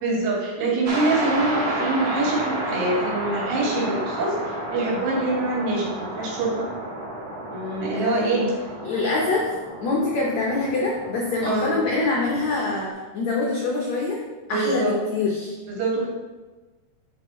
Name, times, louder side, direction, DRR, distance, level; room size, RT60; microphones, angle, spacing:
voice 1, 0.0-4.4 4.7-6.7 7.5-8.5 11.5-11.8 14.5-14.9 15.7-16.1, right 2 dB, 90° right, -4 dB, 4.2 m, -25 dB
sound 1, 0.9-12.9, right 1 dB, 50° right, 2.0 m, -31 dB
voice 2, 7.9-8.5 8.8-9.5 9.8-12.9 13.1-14.2 14.5-15.5, left 3 dB, 90° left, -2 dB, 1.5 m, -25 dB
11.5 x 4.4 x 3.2 m, 1.2 s
omnidirectional pair, 4.6 m